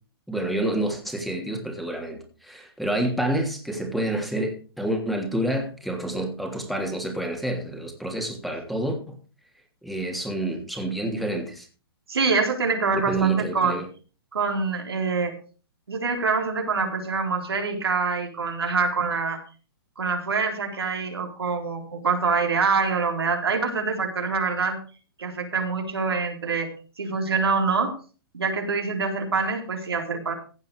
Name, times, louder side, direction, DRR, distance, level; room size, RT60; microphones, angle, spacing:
voice 1, 0.3-9.2 9.8-11.7 12.9-13.9, right 1 dB, ahead, 2 dB, 3.1 m, -28 dB
voice 2, 12.1-13.8 14.3-15.4 15.9-19.4 20.0-24.8 25.2-26.7 27.0-28.0 28.3-30.3, right 4 dB, 85° right, 3 dB, 3.7 m, -25 dB
15.5 x 8.2 x 4.8 m, 0.38 s
hypercardioid pair, 130°, 13 cm